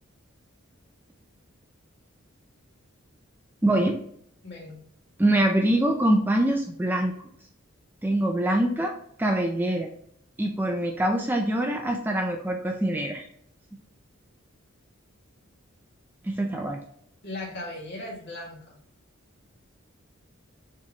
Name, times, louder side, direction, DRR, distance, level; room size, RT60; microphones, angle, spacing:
voice 1, 3.6-4.0 5.2-7.1 8.0-8.9 9.2-9.9 10.4-13.2 16.2-16.8, right 1 dB, 10° right, 2 dB, 0.4 m, -24 dB
voice 2, 4.4-4.8 17.2-18.8, left 2 dB, 50° left, -3 dB, 1.8 m, -37 dB
4.7 x 3.5 x 2.9 m, 0.66 s
head